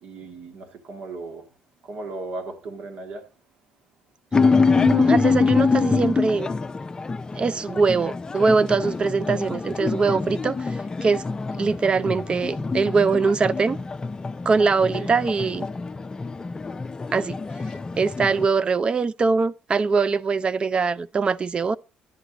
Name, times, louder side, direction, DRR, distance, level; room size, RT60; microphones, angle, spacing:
voice 1, 0.0-1.5 1.8-3.2 14.9-15.1, right 3 dB, 70° right, 1.8 m, -36 dB
sound 1, 4.3-18.4, left 4 dB, 25° left, 0.5 m, -25 dB
voice 2, 4.8-6.5 7.3-11.2 11.5-13.8 14.5-15.7 17.1-17.4 18.0-21.8, right 4 dB, 35° right, 0.4 m, -22 dB
11.0 x 7.9 x 3.9 m
supercardioid pair, 75°, 3 cm